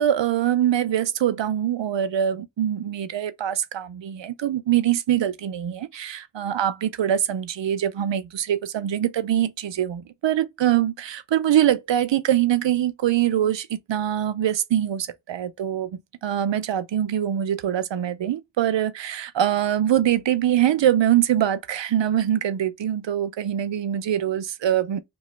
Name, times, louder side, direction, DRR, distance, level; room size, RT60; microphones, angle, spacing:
voice 1, 0.0-25.0, right 11 dB, 90° right, 0.5 m, -23 dB
2.9 x 2.3 x 3.0 m
cardioid pair, 45°, 43 cm